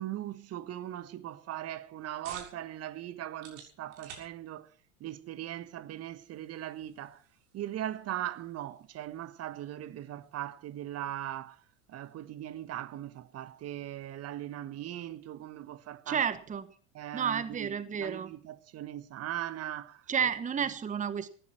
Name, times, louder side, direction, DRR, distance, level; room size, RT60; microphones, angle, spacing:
voice 1, 0.0-4.7 5.0-7.2 7.5-11.6 11.9-16.2 16.9-20.3 20.6-20.7, right 12 dB, 40° right, 1.4 m, -39 dB
sound 1, 1.6-16.7, right 6 dB, 65° right, 6.8 m, -58 dB
voice 2, 16.1-16.7 17.1-18.3 20.1-21.3, right 7 dB, 20° right, 1.3 m, -31 dB
19.0 x 15.0 x 4.5 m
hypercardioid pair, 80°, 39 cm